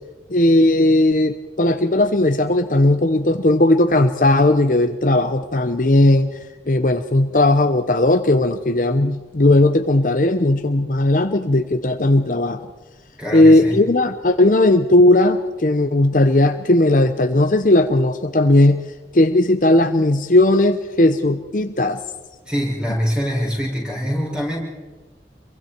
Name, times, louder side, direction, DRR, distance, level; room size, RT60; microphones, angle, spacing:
voice 1, 0.3-6.4 6.7-12.7 13.3-18.8 19.1-22.0, left 1 dB, 50° left, 8 dB, 0.9 m, -16 dB
voice 2, 13.2-13.8 22.5-24.6, equal, 5° right, -3 dB, 6.6 m, -24 dB
27.0 x 23.5 x 4.6 m, 1.2 s
head